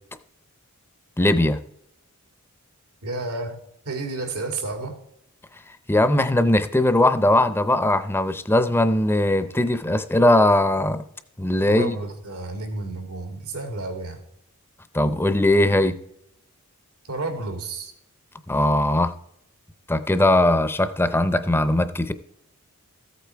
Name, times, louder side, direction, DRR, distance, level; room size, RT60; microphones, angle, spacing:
voice 1, 1.2-1.6 5.9-11.0 11.4-12.0 14.9-16.0 18.5-19.1 19.9-22.1, left 1 dB, 10° left, 11 dB, 0.6 m, -19 dB
voice 2, 3.0-3.6 3.8-5.0 11.7-14.2 17.1-17.9, right 2 dB, 90° right, 5 dB, 2.4 m, -31 dB
14.0 x 8.3 x 4.6 m, 0.74 s
head